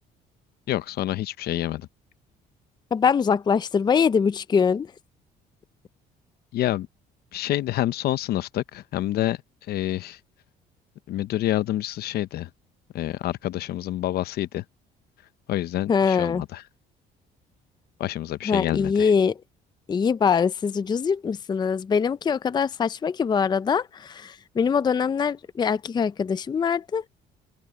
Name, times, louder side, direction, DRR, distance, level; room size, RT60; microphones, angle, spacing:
voice 1, 0.7-1.9 6.5-6.9 7.3-9.4 9.7-10.2 11.1-12.5 12.9-14.6 15.5-16.6 18.0-19.1, left 14 dB, 70° left, 0.9 m, -27 dB
voice 2, 2.9-4.9 15.9-16.4 18.5-19.3 19.9-27.0, left 6 dB, 25° left, 0.5 m, -23 dB
open air
cardioid pair, 110°, 17 cm